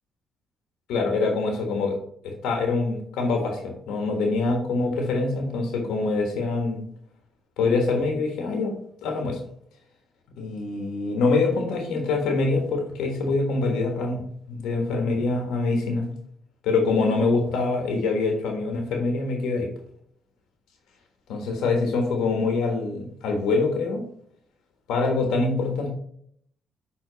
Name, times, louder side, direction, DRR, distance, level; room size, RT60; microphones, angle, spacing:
voice 1, 0.9-2.0 2.2-6.9 7.6-8.7 9.0-9.4 10.4-14.2 14.5-16.1 16.6-19.7 21.3-24.0 24.9-25.9, left 3 dB, 85° left, 2 dB, 1.3 m, -24 dB
6.7 x 3.8 x 3.9 m, 0.65 s
cardioid pair, 90°, 0 cm